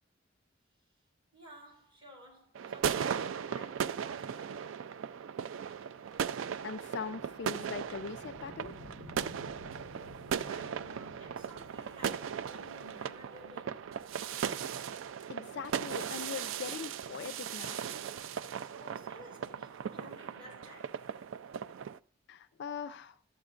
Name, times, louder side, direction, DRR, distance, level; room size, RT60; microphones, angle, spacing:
voice 1, 1.3-4.7 10.0-13.9 18.7-21.1, left 1 dB, 25° right, 5.2 m, -55 dB
sound 1, 2.5-22.0, right 8 dB, 75° right, 0.3 m, -38 dB
sound 2, 5.8-16.0, left 1 dB, 60° right, 3.9 m, -55 dB
voice 2, 6.6-8.8 15.3-17.8 22.3-23.2, left 6 dB, 60° left, 0.4 m, -41 dB
13.0 x 8.0 x 2.5 m
head